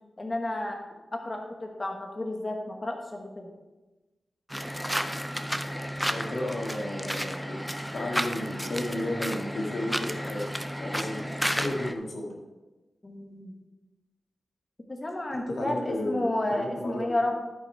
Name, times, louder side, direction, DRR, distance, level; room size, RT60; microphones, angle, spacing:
voice 1, 0.2-0.8 1.1-3.5 13.0-13.5 14.9-17.4, left 1 dB, 25° left, 2 dB, 1.1 m, -31 dB
sound 1, 4.5-11.9, equal, ahead, 0.5 m, -32 dB
voice 2, 6.1-7.6 7.9-10.4 10.8-12.4 15.3-17.0, left 1 dB, 80° left, 0 dB, 1.8 m, -33 dB
12.5 x 5.2 x 4.5 m, 1.1 s
wide cardioid pair, 125°, 0 cm